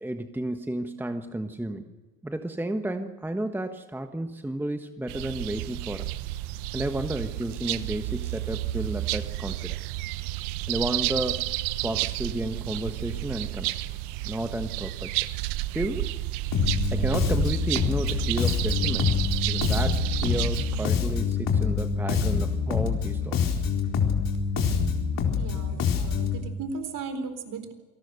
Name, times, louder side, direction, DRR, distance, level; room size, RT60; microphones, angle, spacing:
voice 1, 0.0-1.9 2.2-6.1 6.7-9.8 10.7-11.5 11.8-15.2 15.7-16.1 16.9-19.2 19.5-23.6, right 1 dB, 5° right, 7 dB, 1.4 m, -32 dB
sound 1, 5.1-20.9, right 17 dB, 65° right, 1.2 m, -31 dB
Bass guitar, 16.5-26.4, left 6 dB, 45° left, 4.3 m, -26 dB
voice 2, 25.3-27.7, right 4 dB, 45° right, 9 dB, 4.2 m, -36 dB
28.0 x 18.5 x 6.7 m, 1.3 s
hypercardioid pair, 85°, 44 cm